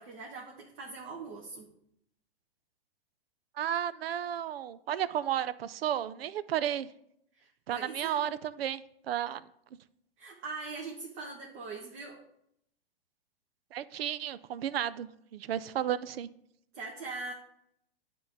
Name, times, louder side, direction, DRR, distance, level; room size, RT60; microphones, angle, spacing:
voice 1, 0.0-1.7 7.3-8.3 10.2-12.2 16.7-17.3, right 3 dB, 40° right, -1 dB, 1.4 m, -42 dB
voice 2, 3.6-6.9 7.7-8.8 9.1-9.4 13.7-16.3, right 10 dB, 75° right, 16 dB, 0.6 m, -33 dB
8.7 x 3.8 x 6.8 m, 0.74 s
hypercardioid pair, 125°, 30 cm